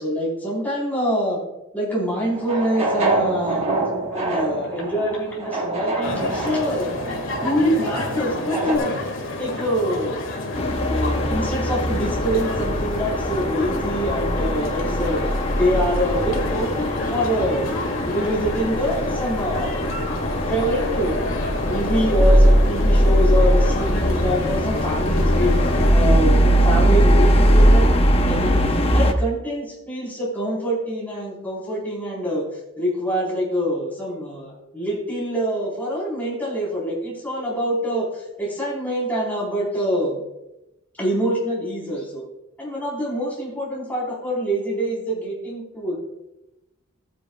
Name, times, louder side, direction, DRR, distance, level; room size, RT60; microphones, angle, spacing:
voice 1, 0.0-1.4 1.7-3.7 4.1-6.9 7.4-9.0 9.4-10.2 10.8-15.2 15.5-17.7 18.1-19.8 20.5-21.2 21.6-27.9 28.2-32.4 32.8-40.2 41.0-42.2 42.6-46.0, equal, 10° left, -5 dB, 4.3 m, -25 dB
sound 1, 2.1-8.8, right 2 dB, 30° right, 1.6 m, -26 dB
sound 2, 6.0-25.9, left 2 dB, 70° left, 2.1 m, -29 dB
sound 3, 10.5-29.1, equal, 30° left, 0.8 m, -20 dB
16.0 x 9.8 x 2.4 m, 0.92 s
head